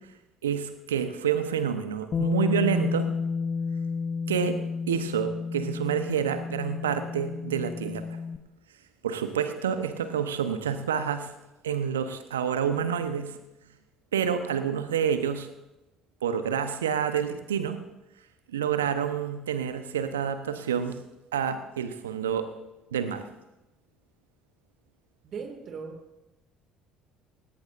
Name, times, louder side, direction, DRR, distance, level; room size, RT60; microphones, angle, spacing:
voice 1, 0.4-3.1 4.3-4.6 4.9-8.0 9.0-11.3 11.6-13.4 14.1-15.5 16.2-17.8 18.5-21.0 21.3-22.5 22.9-23.3, right 8 dB, 85° right, 10 dB, 0.8 m, -28 dB
Bass guitar, 2.1-8.4, left 5 dB, 40° left, 0.8 m, -31 dB
voice 2, 25.2-26.2, right 5 dB, 50° right, 5 dB, 2.2 m, -39 dB
17.5 x 17.0 x 2.6 m, 0.98 s
hypercardioid pair, 55°, 0 cm